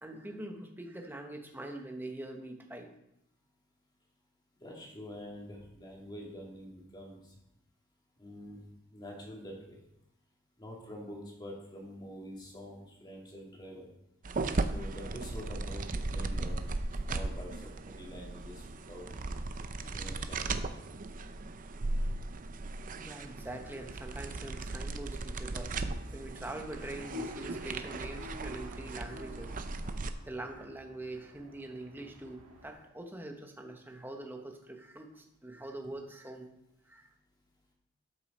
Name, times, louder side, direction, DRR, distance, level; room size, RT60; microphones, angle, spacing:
voice 1, 0.0-2.9 23.0-25.8 26.1-29.5 30.2-36.5 36.9-37.1, right 1 dB, 10° right, 3 dB, 1.1 m, -44 dB
voice 2, 4.6-7.3 8.2-8.6 8.9-9.8 10.6-13.9 14.7-16.7 17.1-19.1 19.8-20.8, equal, 20° left, -2 dB, 2.4 m, -46 dB
sound 1, 14.2-30.1, right 2 dB, 40° right, 0.5 m, -37 dB
sound 2, 26.7-32.7, left 2 dB, 65° right, 2.0 m, -48 dB
13.0 x 6.7 x 4.2 m, 0.81 s
head